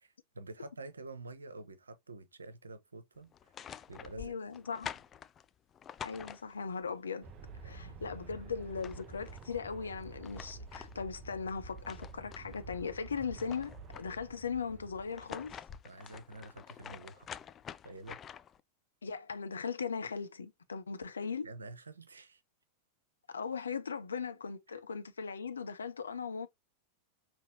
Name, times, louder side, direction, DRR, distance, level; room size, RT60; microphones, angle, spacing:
voice 1, 0.0-3.5 3.9-4.3 7.6-8.0 15.8-17.3 17.8-18.2 21.4-22.4 24.7-24.8, right 2 dB, 75° right, 0.7 m, -48 dB
sound 1, 3.3-6.9 8.3-8.4 8.6-9.5 10.0-12.7 13.1-14.4 15.0-18.6, left 8 dB, 25° left, 0.3 m, -48 dB
voice 2, 4.2-4.9 6.0-7.3 7.6-15.6 19.0-21.5 23.3-26.5, left 5 dB, 70° left, 0.6 m, -38 dB
Aircraft, 7.2-15.6, right 3 dB, 30° right, 0.7 m, -50 dB
5.3 x 2.9 x 2.6 m
figure-of-eight pair, 90°, 0 cm